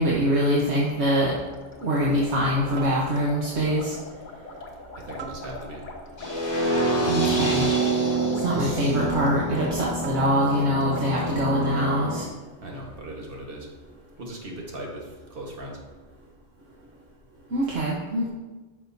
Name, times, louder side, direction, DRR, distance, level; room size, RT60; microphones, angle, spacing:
voice 1, 0.0-1.3 1.8-3.9 7.1-7.7 8.4-12.3 17.5-18.3, equal, 70° right, -4 dB, 1.3 m, -24 dB
sound 1, 1.2-11.1, left 2 dB, 45° left, 1.0 m, -42 dB
sound 2, 2.8-3.5 5.2-6.0 7.6-8.5 10.0-10.6, right 4 dB, 90° right, 1.1 m, -41 dB
voice 2, 4.9-5.8 8.6-9.1 12.6-13.7 14.2-15.8, right 1 dB, 55° right, -1 dB, 1.5 m, -39 dB
sound 3, 6.2-12.2, right 2 dB, 20° left, 2.0 m, -26 dB
9.3 x 6.1 x 2.7 m, 1.2 s
omnidirectional pair, 1.2 m